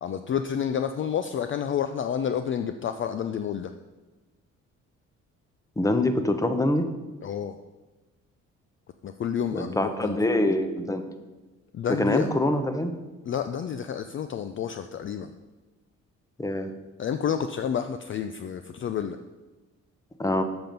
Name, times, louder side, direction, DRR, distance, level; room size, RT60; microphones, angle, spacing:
voice 1, 0.0-3.7 7.2-7.6 9.0-10.2 11.7-12.3 13.3-15.3 17.0-19.2, left 8 dB, 40° left, 9 dB, 0.4 m, -29 dB
voice 2, 5.8-6.8 9.5-11.0 12.0-12.9 16.4-16.7 20.2-20.4, left 1 dB, 10° left, 8 dB, 0.8 m, -24 dB
6.9 x 6.0 x 5.3 m, 1.2 s
cardioid pair, 90°, 30 cm